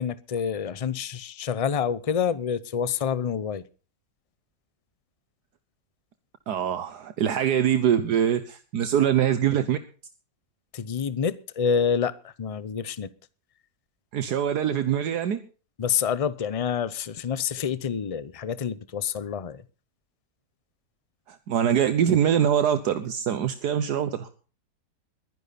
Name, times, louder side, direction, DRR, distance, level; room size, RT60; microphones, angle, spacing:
voice 1, 0.0-3.6 10.7-13.1 15.8-19.6, left 7 dB, 45° left, 0.4 m, -27 dB
voice 2, 6.5-9.8 14.1-15.4 21.3-24.3, right 9 dB, 75° right, 1.5 m, -23 dB
22.0 x 10.5 x 4.1 m
omnidirectional pair, 1.8 m